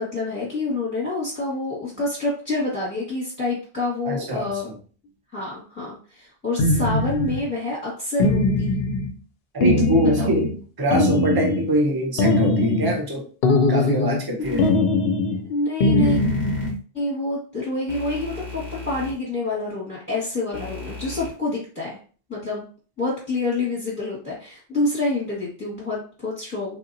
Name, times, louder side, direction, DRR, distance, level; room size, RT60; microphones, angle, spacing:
voice 1, 0.0-4.7 5.3-8.7 10.0-10.3 14.4-14.6 15.4-16.2 16.9-22.0 22.3-22.7 23.0-26.8, left 2 dB, 10° left, -7 dB, 1.3 m, -27 dB
voice 2, 4.0-4.5 9.5-10.5 10.8-13.2 13.7-14.9, equal, 25° right, 1 dB, 0.8 m, -24 dB
sound 1, 6.6-7.5 8.2-9.1 9.6-10.6 10.9-11.7 12.2-13.0 13.4-14.3 14.6-15.4 15.8-16.8, left 2 dB, 75° left, 0.8 m, -20 dB
sound 2, 14.4-14.7 16.0-16.7 17.9-19.1 20.5-21.3, left 2 dB, 45° right, 1.3 m, -36 dB
3.6 x 2.8 x 2.6 m, 0.39 s
omnidirectional pair, 1.1 m